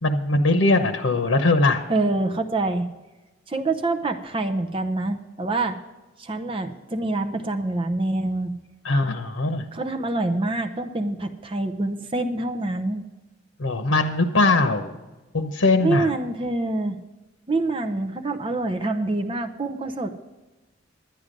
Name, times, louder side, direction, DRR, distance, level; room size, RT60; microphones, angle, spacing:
voice 1, 0.0-1.8 8.8-9.7 13.6-14.9 15.3-16.1, left 2 dB, 85° left, 6 dB, 1.0 m, -21 dB
voice 2, 1.9-2.9 3.5-5.8 6.2-8.6 9.7-13.0 15.8-17.0 17.5-20.1, right 2 dB, 25° right, 5 dB, 0.8 m, -26 dB
10.5 x 10.5 x 5.2 m, 1.1 s
head